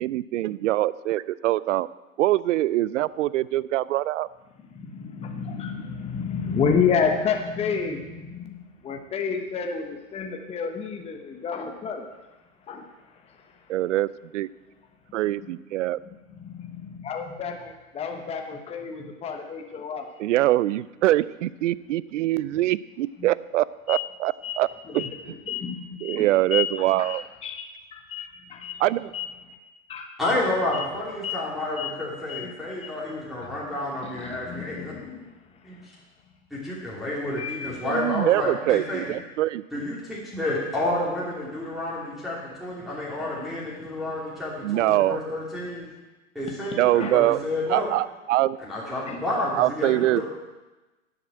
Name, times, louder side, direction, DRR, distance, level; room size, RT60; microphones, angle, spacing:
voice 1, 0.0-1.9 2.2-4.3 13.7-14.1 14.3-14.5 15.1-16.0 20.2-24.7 24.9-25.1 26.0-27.2 28.8-29.1 37.8-39.8 44.6-45.2 46.8-47.4 47.7-48.6 49.6-50.2, right 15 dB, 60° right, 19 dB, 0.6 m, -23 dB
voice 2, 4.7-12.1 12.7-13.7 15.4-15.5 16.0-20.1 23.2-23.3 23.9-24.1 24.4-28.8 29.1-29.3 29.9-30.1 30.7-30.9 31.2-31.4 31.8-31.9 32.3-32.5 32.8-32.9 33.4-33.5 34.0-35.9 37.4-37.9 42.8-42.9 43.4-43.5 46.6-47.2 49.0-49.2, left 6 dB, 15° left, 4 dB, 1.1 m, -31 dB
voice 3, 30.2-34.9 35.6-35.8 36.5-39.1 39.7-45.9 46.3-47.9 48.6-50.3, left 1 dB, ahead, -8 dB, 2.9 m, -30 dB
11.0 x 7.9 x 7.5 m, 1.1 s
hypercardioid pair, 125°, 42 cm